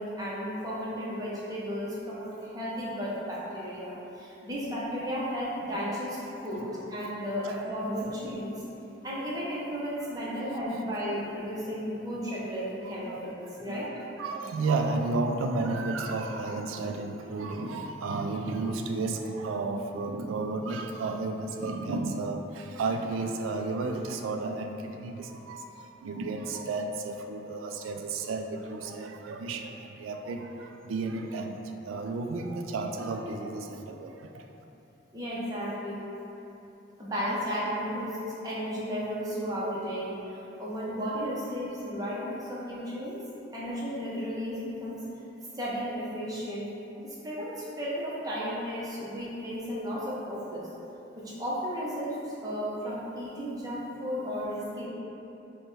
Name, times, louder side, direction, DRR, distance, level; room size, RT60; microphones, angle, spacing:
voice 1, 0.0-8.6 9.0-13.9 35.1-36.0 37.0-43.2 43.5-45.0 45.5-46.7 47.0-50.7 51.1-54.9, equal, 20° right, -7 dB, 0.6 m, -34 dB
voice 2, 12.8-13.3 13.7-34.5, right 3 dB, 90° right, 4 dB, 0.3 m, -32 dB
5.3 x 2.2 x 3.1 m, 2.9 s
head